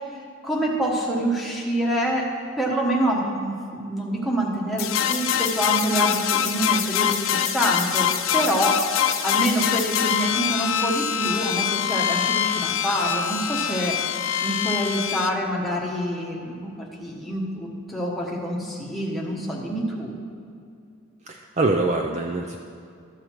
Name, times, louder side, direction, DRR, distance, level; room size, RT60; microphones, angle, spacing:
voice 1, 0.4-2.3 2.6-8.1 8.3-14.1 14.4-20.1, right 1 dB, ahead, -3 dB, 1.2 m, -26 dB
sound 1, 4.8-15.3, left 9 dB, 65° left, 0.5 m, -24 dB
voice 2, 21.3-22.6, right 2 dB, 30° right, 3 dB, 0.4 m, -24 dB
13.0 x 6.5 x 4.5 m, 2.4 s
head